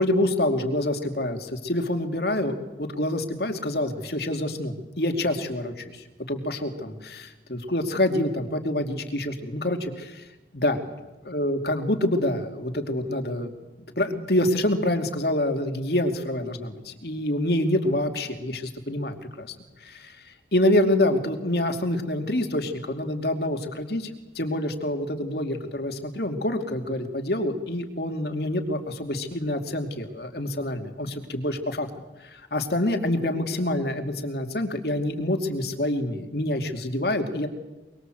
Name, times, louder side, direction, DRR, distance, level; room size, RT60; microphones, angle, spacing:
voice 1, 0.0-10.2 10.5-10.8 11.2-13.5 14.0-19.5 19.8-20.2 20.5-24.1 24.3-31.9 32.3-37.5, left 1 dB, 60° left, 6 dB, 2.7 m, -26 dB
24.5 x 24.0 x 7.8 m, 1.1 s
head